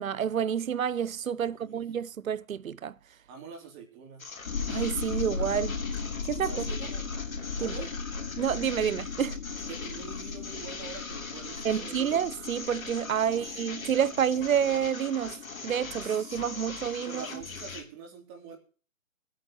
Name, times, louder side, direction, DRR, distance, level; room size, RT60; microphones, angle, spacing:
voice 1, 0.0-2.9 4.7-5.8 6.3-6.5 7.6-7.7 8.4-9.4 11.6-15.4 15.6-17.4, right 8 dB, 85° right, 0.8 m, -29 dB
voice 2, 1.4-1.8 3.3-4.2 6.4-7.1 7.6-7.9 9.7-12.1 13.2-13.5 16.0-16.6 17.0-18.6, right 6 dB, 20° right, 3.2 m, -45 dB
sound 1, 4.2-17.8, left 4 dB, 85° left, 3.3 m, -41 dB
sound 2, 4.5-17.8, left 5 dB, 60° left, 3.1 m, -38 dB
24.5 x 8.8 x 3.1 m
hypercardioid pair, 155°, 40 cm